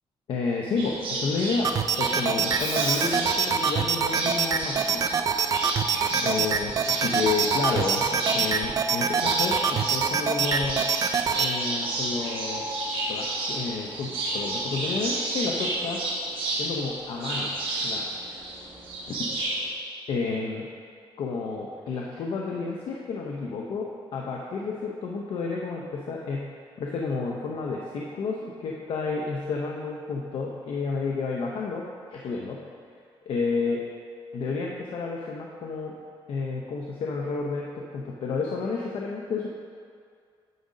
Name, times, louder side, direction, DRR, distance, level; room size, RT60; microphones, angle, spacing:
voice 1, 0.3-5.4 6.1-10.9 11.3-12.6 13.1-16.0 16.6-17.5 17.8-18.4 19.2-19.4 20.1-20.7 21.2-26.5 26.8-32.6 33.3-33.9 34.3-36.0 36.3-39.5, left 4 dB, 65° left, -1 dB, 0.7 m, -31 dB
sound 1, 0.8-19.7, right 2 dB, 65° right, 1.5 m, -31 dB
sound 2, 1.6-11.5, right 6 dB, 40° right, 0.3 m, -25 dB
Screech, 2.3-18.8, right 1 dB, 80° right, 1.7 m, -41 dB
9.3 x 3.8 x 6.2 m, 2.2 s
wide cardioid pair, 155°, 10 cm